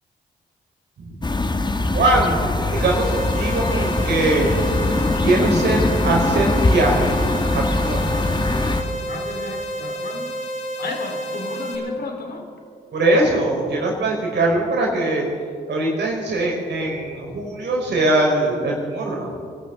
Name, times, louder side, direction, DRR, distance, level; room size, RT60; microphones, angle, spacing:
sound 1, 1.2-8.8, left 2 dB, 25° left, 1.2 m, -22 dB
voice 1, 1.9-4.5 5.2-7.2 7.5-8.3 12.9-15.3 15.7-19.3, right 2 dB, 70° right, -1 dB, 4.9 m, -21 dB
sound 2, 2.8-11.8, right 1 dB, 80° left, 2.2 m, -30 dB
voice 2, 9.0-10.3 10.8-12.4, left 3 dB, 60° left, 2 dB, 2.7 m, -33 dB
23.5 x 12.0 x 3.9 m, 2.2 s
supercardioid pair, 45°, 19 cm